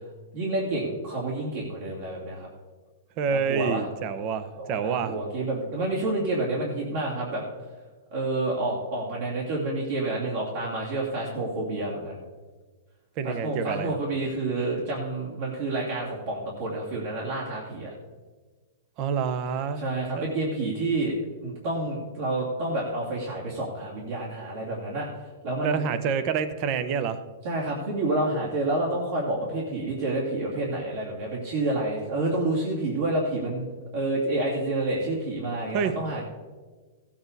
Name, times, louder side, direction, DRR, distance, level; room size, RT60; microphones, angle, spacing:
voice 1, 0.3-2.5 3.3-3.8 4.6-7.4 8.1-12.2 13.2-17.9 19.8-25.1 25.4-25.8 27.4-33.7 33.9-36.2, right 2 dB, 55° right, -5 dB, 2.7 m, -29 dB
voice 2, 3.2-5.1 13.2-14.0 19.0-19.8 20.2-20.3 25.6-27.2 35.7-36.0, right 6 dB, 30° right, 12 dB, 0.7 m, -27 dB
16.0 x 8.6 x 4.0 m, 1.3 s
hypercardioid pair, 165°, 0 cm